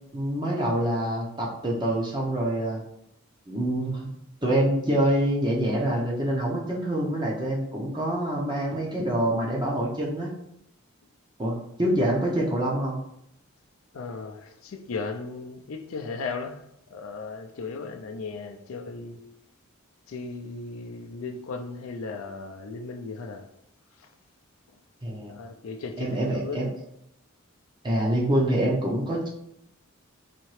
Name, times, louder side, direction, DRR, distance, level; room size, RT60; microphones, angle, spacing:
voice 1, 0.1-2.8 3.5-4.1 4.4-10.3 11.4-13.0 25.0-25.3 26.0-26.7 27.8-29.3, right 1 dB, 20° right, 0.6 m, -26 dB
voice 2, 13.9-19.2 20.1-23.5 24.0-24.1 25.2-26.6, left 4 dB, 70° left, 0.4 m, -36 dB
4.2 x 2.8 x 3.1 m
head